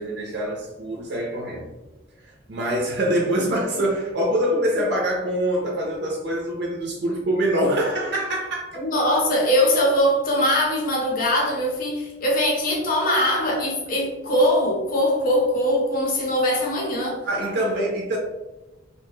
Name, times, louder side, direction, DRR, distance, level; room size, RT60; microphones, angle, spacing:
voice 1, 0.0-1.7 2.5-8.7 17.2-18.2, right 1 dB, 55° right, -1 dB, 0.5 m, -24 dB
voice 2, 8.8-17.2, left 1 dB, 45° left, -2 dB, 0.7 m, -21 dB
2.8 x 2.2 x 3.0 m, 1.0 s
head